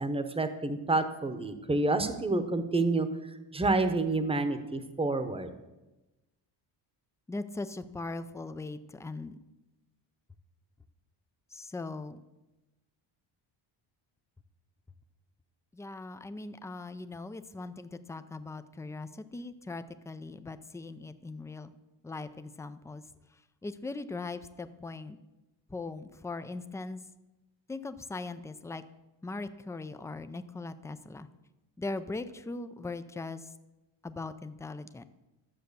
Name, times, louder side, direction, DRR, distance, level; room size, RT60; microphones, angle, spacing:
voice 1, 0.0-3.1 3.5-5.5, right 2 dB, 10° right, 10 dB, 0.9 m, -28 dB
voice 2, 7.3-9.4 11.5-12.2 15.7-21.7 22.0-23.0 23.3-25.2 25.7-27.0 27.7-28.8 29.2-31.3 31.8-33.5 34.0-35.0, left 3 dB, 5° left, 11 dB, 0.3 m, -40 dB
12.0 x 7.7 x 6.7 m, 1.0 s
cardioid pair, 150°, 47 cm